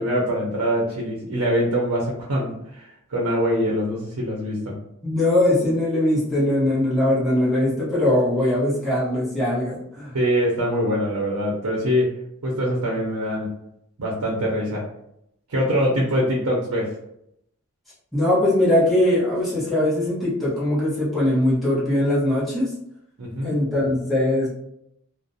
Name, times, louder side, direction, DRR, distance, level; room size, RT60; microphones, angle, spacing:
voice 1, 0.0-4.8 10.1-12.2 12.4-13.5 14.0-14.9 15.5-16.9 23.2-23.5, equal, 75° right, -2 dB, 0.6 m, -23 dB
voice 2, 5.0-10.1 18.1-22.7 23.4-24.5, left 1 dB, ahead, -11 dB, 0.8 m, -21 dB
2.4 x 2.0 x 2.6 m, 0.77 s
head